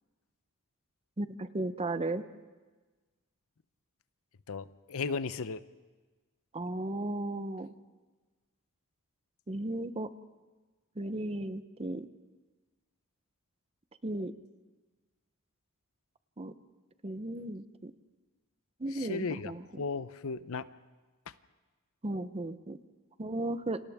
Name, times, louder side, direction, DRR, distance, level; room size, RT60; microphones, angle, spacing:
voice 1, 1.2-2.2 6.5-7.7 9.5-10.1 11.0-12.1 14.0-14.3 16.4-16.5 17.0-17.9 18.8-19.8 22.0-22.8 23.2-23.8, right 1 dB, 30° right, 12 dB, 0.8 m, -35 dB
voice 2, 4.5-5.6 19.0-19.5 19.8-20.6, left 4 dB, 70° left, 14 dB, 0.7 m, -35 dB
29.5 x 26.5 x 3.6 m, 1.3 s
head